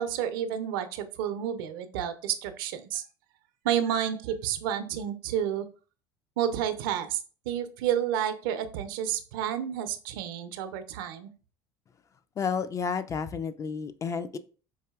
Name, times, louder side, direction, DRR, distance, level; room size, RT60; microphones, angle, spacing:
voice 1, 0.0-3.0 3.6-5.7 6.4-7.2 7.5-11.3, right 9 dB, 75° right, 10 dB, 0.5 m, -30 dB
voice 2, 12.4-14.4, left 6 dB, 30° left, 13 dB, 0.3 m, -31 dB
4.6 x 2.7 x 2.3 m, 0.37 s
hypercardioid pair, 80°, 11 cm